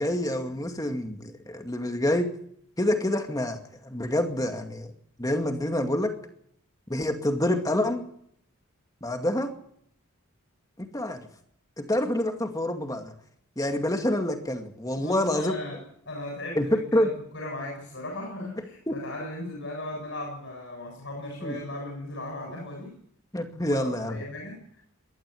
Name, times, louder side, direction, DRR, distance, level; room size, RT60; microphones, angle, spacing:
voice 1, 0.0-2.3 2.8-4.9 5.2-6.1 6.9-8.0 9.0-9.5 10.8-11.2 11.8-13.1 13.6-15.6 16.6-17.1 18.9-19.0 21.4-21.6 23.3-24.2, left 1 dB, 15° left, 5 dB, 2.2 m, -27 dB
voice 2, 15.0-15.8 16.1-22.9 23.5-24.8, left 1 dB, 60° left, 0 dB, 7.6 m, -37 dB
20.5 x 13.5 x 9.8 m, 0.68 s
head